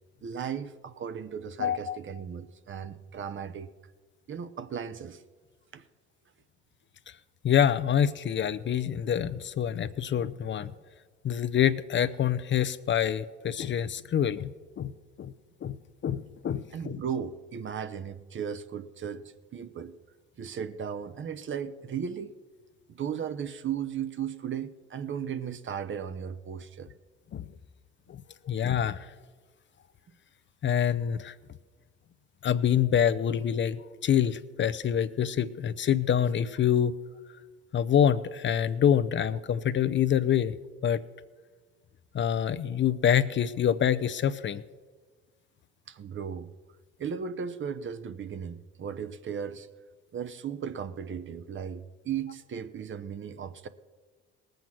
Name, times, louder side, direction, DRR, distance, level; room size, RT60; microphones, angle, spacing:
voice 1, 0.2-3.7 4.3-5.2 5.7-5.8 16.7-19.9 20.4-22.3 22.9-26.9 45.9-46.5 47.0-49.7 50.1-53.7, right 7 dB, 40° right, 0.8 m, -36 dB
voice 2, 1.6-2.0 7.4-10.7 11.2-14.9 15.2-15.3 15.6-15.8 16.0-17.0 27.3-27.4 28.1-29.1 30.6-31.3 32.4-37.0 37.7-40.5 40.8-41.0 42.1-44.6, left 9 dB, 40° left, 0.6 m, -26 dB
18.5 x 7.9 x 6.0 m
supercardioid pair, 75°, 30 cm